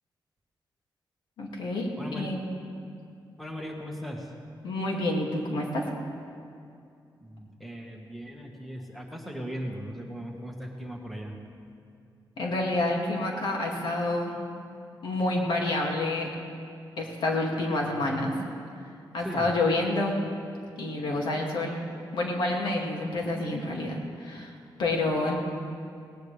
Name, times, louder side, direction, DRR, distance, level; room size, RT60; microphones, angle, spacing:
voice 1, 1.4-2.5 4.6-5.9 12.4-14.4 15.0-16.3 17.0-18.4 19.1-20.2 20.8-21.8 22.1-25.4, left 2 dB, 85° left, -1 dB, 2.4 m, -28 dB
voice 2, 2.0-2.3 3.4-4.2 7.2-11.3 19.2-19.5, equal, ahead, 0 dB, 1.6 m, -38 dB
19.0 x 18.5 x 3.4 m, 2.4 s
wide cardioid pair, 155°, 8 cm